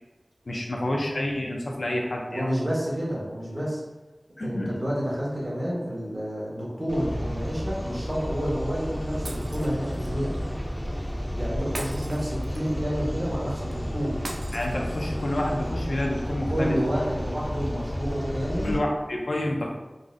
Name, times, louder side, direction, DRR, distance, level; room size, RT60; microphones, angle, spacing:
voice 1, 0.5-2.5 4.4-4.8 14.5-16.8 18.6-19.7, left 1 dB, 85° left, 0 dB, 0.5 m, -28 dB
voice 2, 2.3-3.8 4.4-10.4 11.3-14.2 16.5-18.7, equal, 50° right, -6 dB, 1.2 m, -29 dB
sound 1, 6.9-18.8, equal, 20° left, 0.5 m, -32 dB
Shatter, 9.3-10.1 11.7-12.8 14.3-15.3, right 1 dB, 85° right, 0.3 m, -40 dB
3.8 x 2.0 x 2.5 m, 1.1 s
wide cardioid pair, 55°, 0 cm